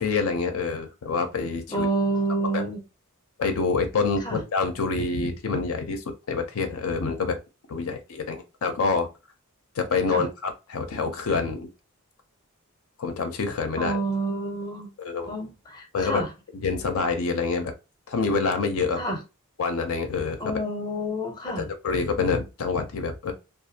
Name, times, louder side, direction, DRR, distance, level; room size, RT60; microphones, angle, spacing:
voice 1, 0.0-1.9 2.5-2.6 3.4-7.4 7.7-9.1 9.8-11.7 13.0-14.0 15.0-15.3 15.9-16.2 16.5-17.7 18.1-19.0 19.6-20.4 21.6-23.3, left 4 dB, 70° left, 0.5 m, -26 dB
voice 2, 1.7-2.8 4.2-4.4 10.1-10.3 13.8-14.9 15.3-16.3 19.0-19.2 20.4-21.6, right 2 dB, 20° left, 0.6 m, -28 dB
2.5 x 2.3 x 2.7 m
head